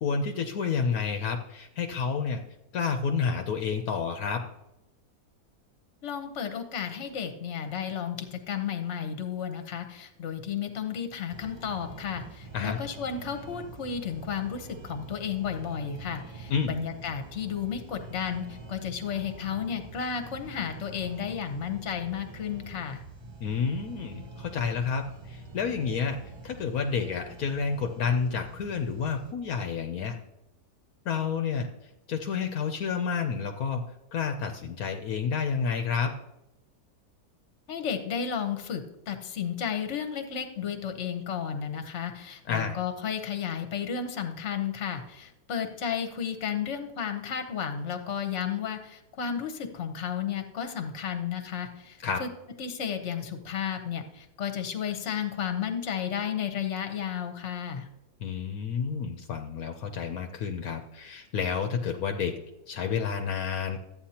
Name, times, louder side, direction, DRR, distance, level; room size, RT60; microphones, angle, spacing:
voice 1, 0.0-2.4 2.7-4.4 12.5-12.8 16.5-16.7 23.4-30.2 31.0-31.7 32.1-33.8 34.1-36.1 42.5-42.8 52.0-52.2 58.2-62.4 62.7-63.8, left 6 dB, 70° left, 5 dB, 1.2 m, -30 dB
voice 2, 6.0-23.0 37.7-52.3 52.6-57.9, left 8 dB, 50° left, 7 dB, 1.3 m, -33 dB
sound 1, 11.3-29.3, right 2 dB, 30° right, 0.5 m, -45 dB
13.0 x 8.9 x 2.9 m, 0.92 s
omnidirectional pair, 1.6 m